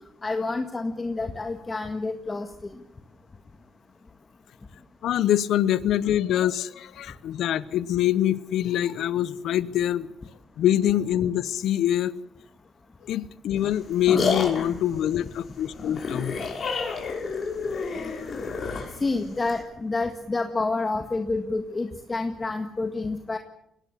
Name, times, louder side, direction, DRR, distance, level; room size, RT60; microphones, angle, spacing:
voice 1, 0.2-2.7 19.0-23.4, left 3 dB, 25° left, 6 dB, 1.8 m, -28 dB
voice 2, 5.0-10.1 10.6-12.1 13.0-16.4, left 11 dB, 75° left, 16 dB, 0.8 m, -24 dB
sound 1, 13.6-19.6, left 4 dB, 50° left, 5.6 m, -30 dB
22.0 x 18.0 x 8.4 m, 0.78 s
cardioid pair, 90°, 0 cm